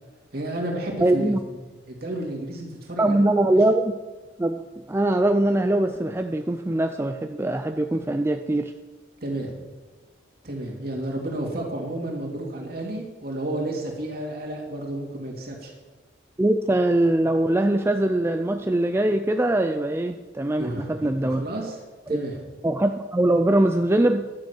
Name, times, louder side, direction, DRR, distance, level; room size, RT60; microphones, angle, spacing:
voice 1, 0.3-1.3 1.9-3.2 3.5-3.6 9.2-9.6 10.4-15.7 20.6-21.8 22.1-22.4, right 1 dB, 55° right, -1 dB, 2.9 m, -31 dB
voice 2, 1.0-1.4 3.0-4.0 4.4-4.6 4.9-8.7 16.4-21.4 22.1-22.2 22.6-24.3, right 1 dB, 15° right, 6 dB, 0.4 m, -22 dB
11.5 x 6.7 x 8.2 m, 1.3 s
head